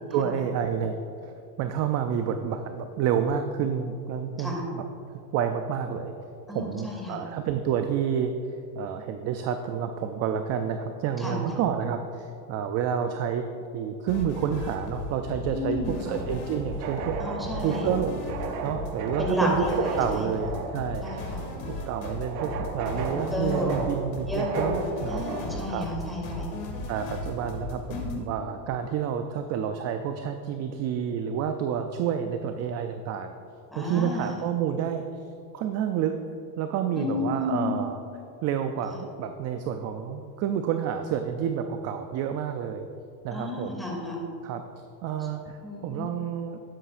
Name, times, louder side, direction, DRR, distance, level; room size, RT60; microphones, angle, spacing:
voice 1, 0.1-1.0 1.2-1.3 1.6-4.8 5.3-6.1 6.5-13.5 13.7-17.2 17.6-18.2 18.6-21.1 21.7-25.2 25.7-26.1 26.9-33.3 33.8-35.1 35.5-36.2 36.6-38.0 38.4-42.9 43.2-43.8 44.4-44.6 45.0-46.6, right 8 dB, 35° right, 7 dB, 0.4 m, -29 dB
voice 2, 6.5-7.2 11.2-11.4 15.5-16.0 17.2-17.9 19.2-20.2 21.0-21.4 23.1-23.7 24.2-26.5 27.9-28.3 33.7-34.3 37.0-37.8 38.8-39.0 43.3-44.2 45.6-46.1, left 1 dB, ahead, -3 dB, 2.5 m, -31 dB
sound 1, 14.1-28.2, left 3 dB, 65° left, 2.3 m, -36 dB
sound 2, 16.0-25.7, right 5 dB, 90° right, 1.1 m, -36 dB
12.0 x 10.0 x 2.5 m, 2.5 s
supercardioid pair, 125°, 48 cm